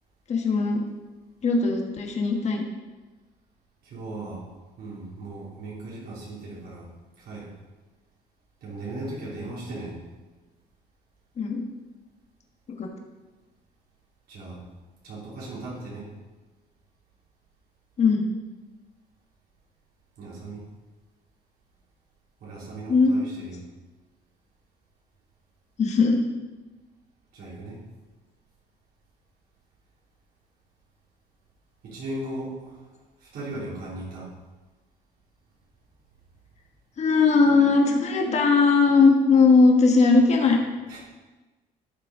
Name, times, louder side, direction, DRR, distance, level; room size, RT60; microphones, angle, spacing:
voice 1, 0.3-0.8 1.4-2.6 11.4-11.6 12.7-12.9 18.0-18.2 22.9-23.1 25.8-26.2 37.0-40.6, left 4 dB, 40° left, 1 dB, 1.5 m, -19 dB
voice 2, 3.8-4.4 4.8-6.9 7.2-7.5 8.6-10.0 14.3-14.6 15.0-16.1 20.2-20.6 22.4-23.6 27.3-27.8 31.8-32.8 33.2-34.3 40.9-41.0, right 2 dB, 65° right, -6 dB, 3.2 m, -37 dB
12.0 x 6.8 x 3.7 m, 1.2 s
cardioid pair, 110°, 17 cm